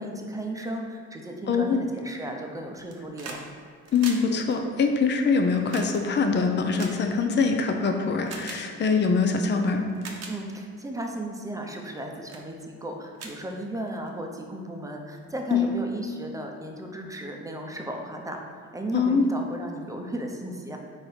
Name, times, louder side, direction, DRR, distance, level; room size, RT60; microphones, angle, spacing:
voice 1, 0.0-3.4 10.3-20.8, right 1 dB, 10° right, 2 dB, 0.8 m, -35 dB
voice 2, 1.5-1.9 3.9-9.8 15.5-15.7 18.9-19.3, left 5 dB, 35° left, 4 dB, 0.6 m, -23 dB
sound 1, 2.7-3.4 3.7-7.6 8.2-8.6 9.4-9.5 9.9-10.3 10.9-11.2 11.7-12.0 12.3-12.5 12.8-12.9 13.1-14.1 15.2-15.3, right 4 dB, 55° right, 0.9 m, -41 dB
4.6 x 4.1 x 5.0 m, 2.3 s
cardioid pair, 90°, 30 cm